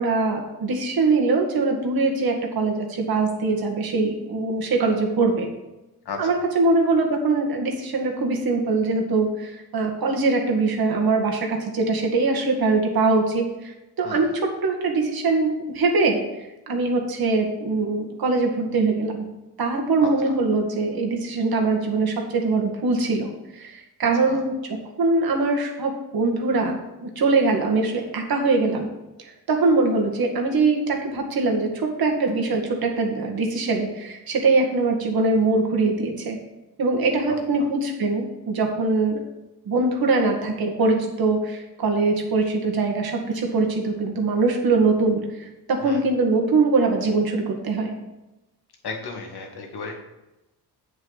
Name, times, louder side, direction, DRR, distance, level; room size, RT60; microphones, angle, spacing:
voice 1, 0.0-5.5 6.2-14.3 14.6-16.2 16.7-19.3 19.6-28.9 29.2-36.4 36.8-39.2 39.7-48.0, right 3 dB, 60° right, 1 dB, 1.8 m, -22 dB
voice 2, 14.0-14.3 20.0-20.1 24.2-24.4 45.8-46.0 48.8-50.0, left 4 dB, 70° left, 1 dB, 1.8 m, -34 dB
8.3 x 7.8 x 4.0 m, 0.98 s
cardioid pair, 105°, 40 cm